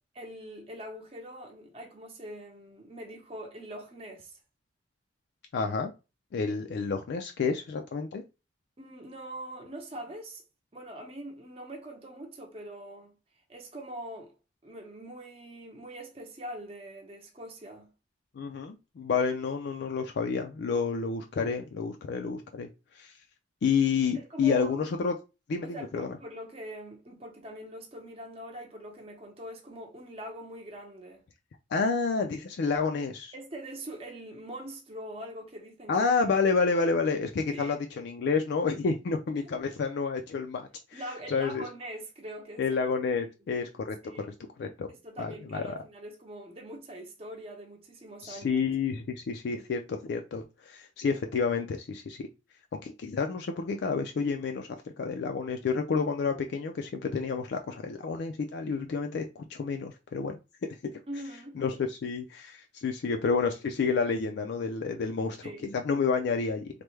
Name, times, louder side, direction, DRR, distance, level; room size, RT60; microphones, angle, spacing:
voice 1, 0.2-4.4 8.8-10.4 10.7-13.2 13.5-14.3 14.6-17.9 24.1-24.7 25.6-31.2 33.3-36.4 37.5-37.8 39.4-39.5 40.9-42.6 43.2-43.3 44.0-44.3 44.9-48.6 61.1-61.6 65.4-65.6, right 1 dB, 30° right, 0.7 m, -43 dB
voice 2, 5.5-5.9 6.3-8.2 18.4-22.7 22.9-23.1 23.6-25.1 25.5-26.1 31.7-33.3 35.9-41.0 41.3-41.7 42.6-44.0 44.6-44.9 45.2-45.6 48.2-52.3 52.8-54.7 55.0-60.4 61.6-66.7, left 5 dB, 60° left, 0.4 m, -29 dB
3.3 x 2.1 x 3.1 m
head